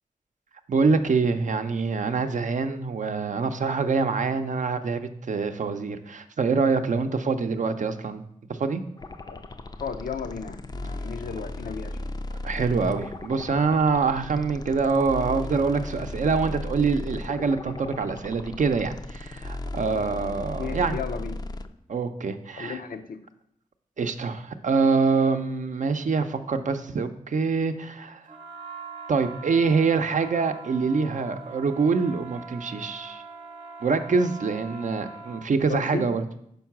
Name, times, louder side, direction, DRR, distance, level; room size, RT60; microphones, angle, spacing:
voice 1, 0.7-8.3 8.6-8.8 12.4-21.0 21.9-22.8 24.0-28.2 29.1-33.2 33.8-36.2, right 4 dB, 60° right, 8 dB, 0.5 m, -25 dB
sound 1, 9.0-21.7, left 2 dB, 30° left, 0.4 m, -36 dB
voice 2, 9.8-12.1 20.6-21.4 22.6-23.2 35.7-36.1, left 6 dB, 80° left, 7 dB, 0.6 m, -34 dB
sound 2, 28.3-35.5, right 4 dB, 30° right, 0.9 m, -42 dB
5.3 x 4.6 x 5.9 m, 0.72 s
wide cardioid pair, 90°, 14 cm